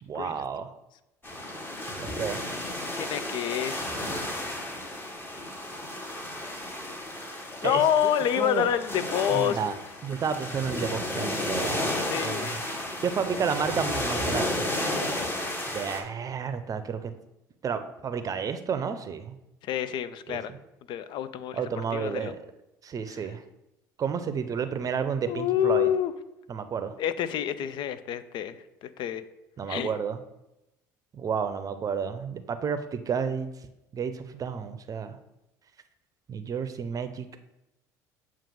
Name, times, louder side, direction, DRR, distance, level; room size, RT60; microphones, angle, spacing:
voice 1, 0.0-0.7 2.0-2.5 7.6-8.7 9.3-9.8 10.0-11.8 12.2-12.6 13.0-14.6 15.7-17.1 17.6-19.4 20.3-20.4 21.5-22.4 22.8-23.4 24.0-25.9 26.5-26.9 29.6-30.2 31.1-33.5 33.9-35.2 36.3-37.3, right 6 dB, 40° right, 10 dB, 0.6 m, -31 dB
sound 1, 1.2-16.0, left 1 dB, 20° left, 1.4 m, -33 dB
voice 2, 3.0-4.0 7.6-9.6 12.1-12.6 19.6-20.5 20.9-21.6 21.9-22.3 25.3-26.1 27.0-29.2 29.7-29.9, left 10 dB, 55° left, 13 dB, 0.4 m, -27 dB
7.3 x 2.5 x 5.4 m, 0.90 s
hypercardioid pair, 65°, 10 cm